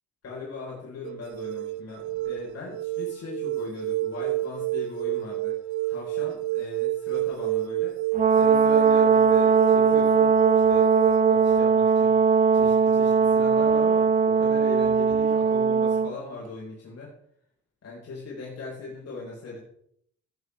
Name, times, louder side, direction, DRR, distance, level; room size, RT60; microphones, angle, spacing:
voice 1, 0.2-5.6 5.9-8.0 8.3-10.9 11.3-12.1 12.5-17.1 17.8-19.6, left 3 dB, 55° left, -5 dB, 4.9 m, -39 dB
sound 1, 1.0-11.6, right 17 dB, 75° right, 0.5 m, -29 dB
Brass instrument, 8.1-16.1, right 5 dB, 30° right, 0.5 m, -20 dB
17.0 x 9.3 x 3.6 m, 0.69 s
cardioid pair, 105°, 29 cm